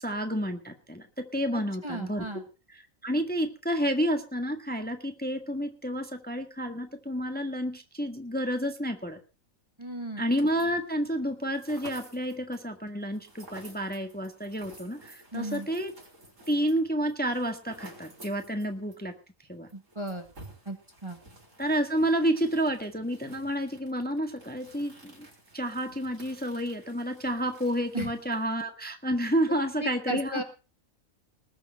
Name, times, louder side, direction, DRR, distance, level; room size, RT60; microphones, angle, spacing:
voice 1, 0.0-2.3 3.0-9.2 10.2-15.9 16.5-19.1 19.5-19.7 21.6-25.3 25.5-30.4, equal, 5° left, 5 dB, 1.5 m, -30 dB
voice 2, 1.5-2.4 9.8-10.2 15.3-15.7 19.7-20.3 20.7-20.8 21.0-21.2 27.9-28.1 29.8-30.4, right 1 dB, 20° right, 5 dB, 1.8 m, -35 dB
sound 1, 10.3-10.9 11.2-19.0 19.3-19.4 19.7-28.7, right 1 dB, 70° right, 5.4 m, -52 dB
20.0 x 7.0 x 6.5 m, 0.35 s
omnidirectional pair, 1.4 m